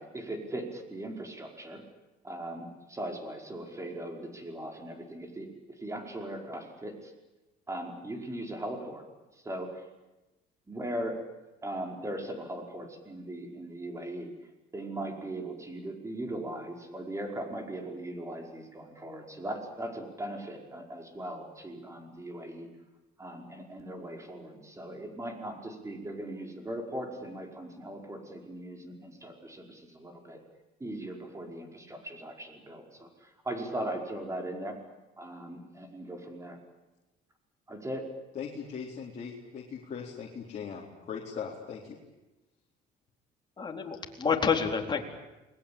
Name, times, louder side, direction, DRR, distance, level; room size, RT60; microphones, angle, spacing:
voice 1, 0.0-1.8 2.2-5.5 5.8-6.9 7.7-9.0 9.4-9.7 10.7-11.2 11.6-14.3 14.7-22.7 23.2-30.4 30.8-33.1 33.4-34.8 35.2-36.6 37.7-38.0, right 1 dB, 15° right, 3 dB, 5.1 m, -39 dB
voice 2, 38.3-42.0, left 6 dB, 45° left, -3 dB, 4.1 m, -39 dB
voice 3, 43.6-45.0, left 6 dB, 25° left, 1 dB, 4.1 m, -28 dB
29.0 x 20.5 x 8.7 m, 1.0 s
cardioid pair, 110°, 17 cm